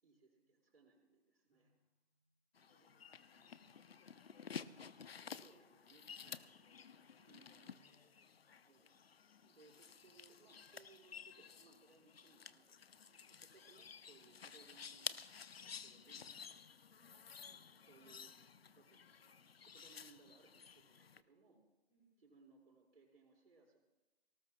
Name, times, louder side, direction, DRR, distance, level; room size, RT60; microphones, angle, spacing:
voice 1, 0.0-1.7 2.6-3.0 5.3-6.6 7.3-8.1 8.7-9.0 9.4-16.7 17.4-21.6 22.2-23.8, right 4 dB, 60° right, -3 dB, 4.5 m, -67 dB
voice 2, 1.5-2.3 2.7-8.6 16.9-17.5 21.9-22.3, left 2 dB, 15° left, -4 dB, 5.1 m, -75 dB
sound 1, 2.5-21.2, left 6 dB, 65° left, 0.7 m, -53 dB
25.5 x 18.5 x 2.3 m, 1.1 s
figure-of-eight pair, 160°, 33 cm